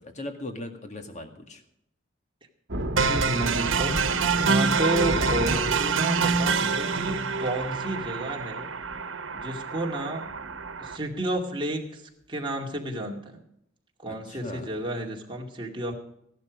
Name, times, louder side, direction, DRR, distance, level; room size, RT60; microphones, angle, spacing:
voice 1, 0.0-1.6 14.1-14.7, left 1 dB, 40° left, 6 dB, 1.9 m, -39 dB
sound 1, 2.7-8.5 8.8-9.0 9.4-9.6 9.9-10.0 10.3-10.9, right 1 dB, 65° right, 1.5 m, -33 dB
sound 2, 3.0-11.0, right 5 dB, 85° right, 1.2 m, -27 dB
voice 2, 3.1-8.7 9.3-10.3 10.8-12.0 12.3-13.4 14.0-15.9, right 1 dB, 25° right, 0 dB, 2.3 m, -31 dB
15.0 x 11.5 x 5.1 m, 0.76 s
head